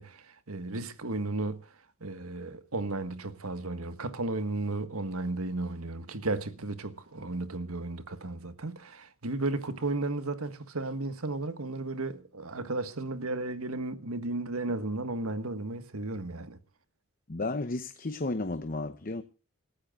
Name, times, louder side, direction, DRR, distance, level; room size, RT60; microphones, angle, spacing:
voice 1, 0.0-1.6 2.0-16.6, right 2 dB, 80° right, 1.6 m, -34 dB
voice 2, 17.3-19.2, left 2 dB, 40° left, 0.9 m, -33 dB
27.5 x 14.5 x 2.5 m
head